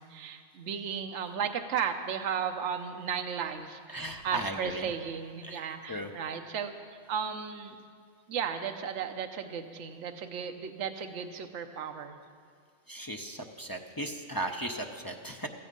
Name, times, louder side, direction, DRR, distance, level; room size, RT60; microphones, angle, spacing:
voice 1, 0.0-6.7 7.1-7.8 8.3-12.2, right 7 dB, 65° right, 6 dB, 1.1 m, -35 dB
voice 2, 3.9-4.9 5.4-6.1 12.9-15.5, right 1 dB, 25° left, 3 dB, 0.5 m, -37 dB
15.5 x 14.5 x 5.3 m, 2.2 s
omnidirectional pair, 1.4 m